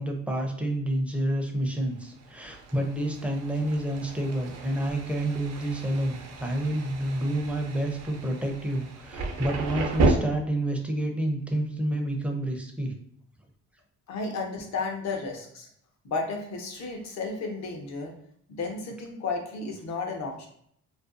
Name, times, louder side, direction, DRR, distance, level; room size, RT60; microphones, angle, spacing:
voice 1, 0.0-12.9, right 1 dB, 5° right, 2 dB, 0.5 m, -29 dB
Thunder, 2.0-10.1, right 3 dB, 60° right, 0.5 m, -33 dB
voice 2, 14.1-15.7 16.0-18.1 18.5-20.5, left 3 dB, 65° left, 2 dB, 0.7 m, -33 dB
2.5 x 2.2 x 2.5 m, 0.68 s
cardioid pair, 90°, 30 cm